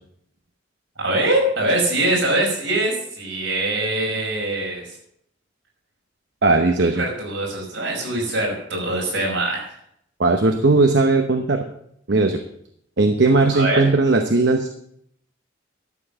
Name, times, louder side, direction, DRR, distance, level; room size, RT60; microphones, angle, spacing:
voice 1, 1.0-5.0 7.0-9.7 13.5-13.8, right 1 dB, 80° right, -1 dB, 5.5 m, -23 dB
voice 2, 6.4-7.0 10.2-11.6 12.1-12.4 13.0-14.7, right 3 dB, 60° right, 5 dB, 0.9 m, -17 dB
12.5 x 7.1 x 6.7 m, 0.71 s
head